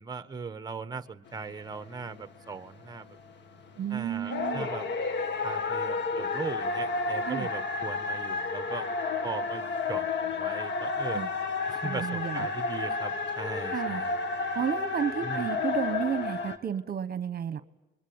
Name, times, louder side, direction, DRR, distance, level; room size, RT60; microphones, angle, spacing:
voice 1, 0.0-3.2 3.9-4.9 5.4-8.9 9.2-11.3 11.7-14.2 15.2-15.5, right 4 dB, 20° right, 10 dB, 1.3 m, -39 dB
sound 1, 1.3-3.4 3.8-3.9 4.2-16.6, left 4 dB, 65° left, 2.1 m, -31 dB
voice 2, 3.8-4.7 7.3-7.5 11.1-11.3 11.8-12.5 13.7-14.0 14.5-17.6, right 9 dB, 50° right, 12 dB, 1.1 m, -32 dB
27.5 x 22.5 x 8.7 m, 0.98 s
cardioid pair, 90°, 20 cm